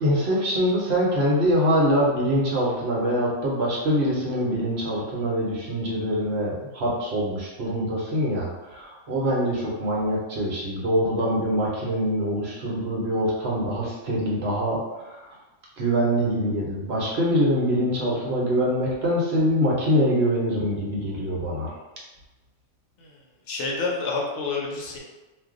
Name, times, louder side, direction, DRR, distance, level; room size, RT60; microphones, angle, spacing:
voice 1, 0.0-15.2 15.8-21.7, equal, 60° right, -4 dB, 1.0 m, -24 dB
voice 2, 23.5-25.0, left 3 dB, 70° left, -2 dB, 1.0 m, -28 dB
2.6 x 2.3 x 3.6 m, 1.1 s
omnidirectional pair, 1.3 m